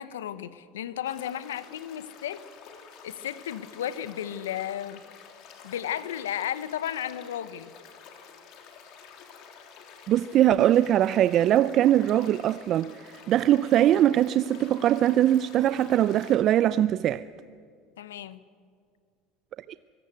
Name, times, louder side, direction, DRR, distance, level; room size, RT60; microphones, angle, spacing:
voice 1, 0.0-2.5 3.0-5.0 5.6-7.7 18.0-18.4, left 10 dB, 90° left, 0.9 m, -34 dB
sound 1, 1.1-16.3, left 6 dB, 60° left, 3.4 m, -50 dB
voice 2, 10.1-17.2, right 12 dB, 50° right, 0.5 m, -22 dB
24.0 x 17.5 x 8.2 m
hypercardioid pair, 85°, 0 cm